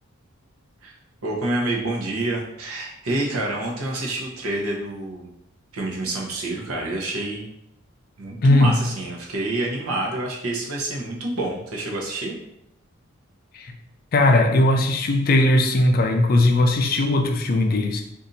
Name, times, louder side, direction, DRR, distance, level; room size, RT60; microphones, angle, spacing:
voice 1, 1.2-5.3 5.7-7.4 8.2-12.4, right 2 dB, 85° right, -2 dB, 0.8 m, -27 dB
voice 2, 8.4-8.8 13.5-13.7 14.1-18.0, left 1 dB, 40° left, 5 dB, 0.3 m, -18 dB
2.7 x 2.5 x 4.0 m, 0.77 s
head